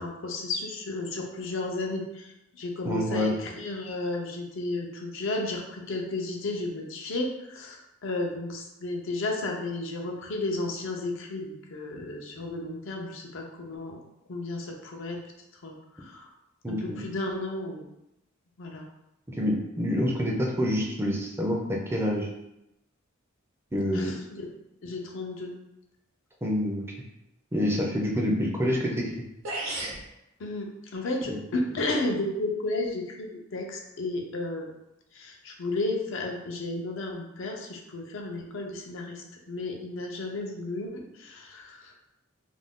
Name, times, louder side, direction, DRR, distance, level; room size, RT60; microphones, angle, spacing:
voice 1, 0.0-14.0 14.3-15.2 15.6-16.3 16.7-17.8 18.6-18.8 23.9-24.4 24.8-25.5 30.4-34.7 35.1-41.9, left 2 dB, 65° left, 1 dB, 0.5 m, -33 dB
voice 2, 2.8-3.3 16.6-17.0 19.3-22.3 23.7-24.1 26.4-26.8 27.5-29.1 31.3-31.4, equal, 10° right, -1 dB, 0.4 m, -27 dB
sound 1, 29.4-30.0, right 1 dB, 80° right, 0.9 m, -32 dB
2.5 x 2.2 x 3.5 m, 0.87 s
head